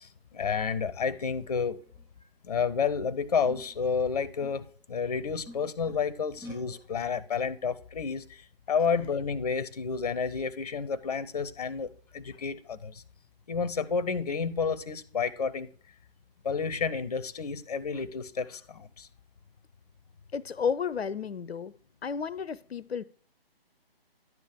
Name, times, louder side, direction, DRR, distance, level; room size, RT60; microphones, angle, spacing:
voice 1, 0.0-1.8 2.4-13.0 13.5-15.7 16.4-19.1, left 5 dB, 40° left, 0.6 m, -30 dB
sound 1, 1.8-2.1 2.8-2.9 3.5-4.8 5.2-6.1 6.4-6.8, left 1 dB, 5° right, 3.3 m, -49 dB
voice 2, 20.3-21.7 22.0-23.0, left 6 dB, 80° left, 0.5 m, -32 dB
11.0 x 7.3 x 3.4 m
figure-of-eight pair, 145°, 30 cm